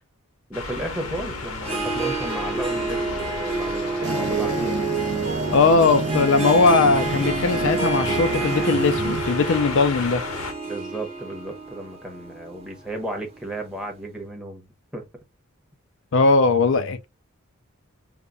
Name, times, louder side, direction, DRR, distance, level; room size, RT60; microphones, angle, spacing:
sound 1, 0.5-10.5, left 3 dB, 80° left, 1.0 m, -34 dB
voice 1, 0.5-4.6 10.7-14.7 14.9-15.0, right 1 dB, 5° right, 0.9 m, -34 dB
Harp, 1.6-13.5, right 3 dB, 25° right, 1.1 m, -29 dB
sound 2, 4.0-9.6, right 4 dB, 50° right, 0.5 m, -29 dB
voice 2, 5.5-10.2 16.1-17.1, left 4 dB, 60° left, 0.4 m, -19 dB
5.3 x 2.2 x 2.3 m
head